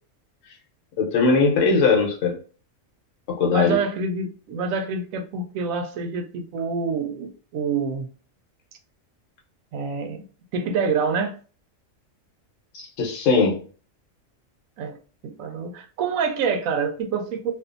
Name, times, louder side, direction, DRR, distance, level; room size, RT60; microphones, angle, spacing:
voice 1, 1.0-2.4 3.3-3.8 12.7-13.5, left 4 dB, 75° left, 1.1 m, -20 dB
voice 2, 3.5-8.1 9.7-10.2 10.5-11.4 14.8-15.0 15.2-17.5, right 5 dB, 85° right, 1.0 m, -26 dB
2.6 x 2.4 x 2.4 m
omnidirectional pair, 1.4 m